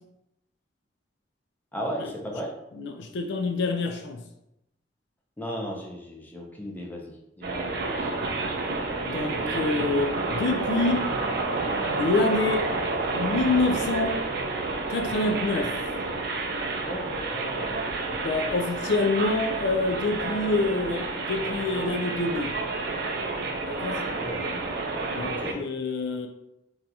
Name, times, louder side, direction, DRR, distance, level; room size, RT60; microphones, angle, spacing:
voice 1, 1.7-2.5 5.4-8.1 16.8-17.7 24.1-24.7 25.1-25.7, equal, 10° left, -1 dB, 0.5 m, -36 dB
voice 2, 2.8-4.2 9.0-11.1 12.0-12.7 13.2-14.2 14.9-15.7 18.1-22.6 23.7-24.1 25.1-26.3, left 3 dB, 65° left, 5 dB, 0.4 m, -26 dB
sound 1, 7.4-25.5, right 3 dB, 60° right, 0.4 m, -30 dB
2.7 x 2.3 x 4.0 m, 0.87 s
head